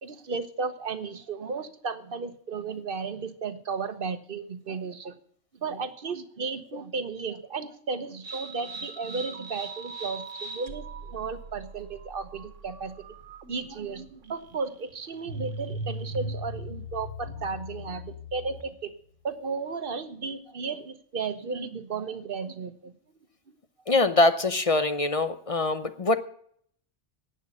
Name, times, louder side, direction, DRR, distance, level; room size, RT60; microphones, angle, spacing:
voice 1, 0.0-5.2 5.6-13.1 13.5-18.9 19.2-22.9 23.5-23.6, right 4 dB, 50° right, 11 dB, 1.2 m, -34 dB
Sci-Fi Alien Mystery, 8.2-18.8, right 1 dB, 85° right, 1.6 m, -40 dB
voice 2, 23.9-26.2, left 2 dB, 35° left, 11 dB, 0.6 m, -23 dB
11.0 x 9.0 x 8.4 m, 0.64 s
omnidirectional pair, 1.2 m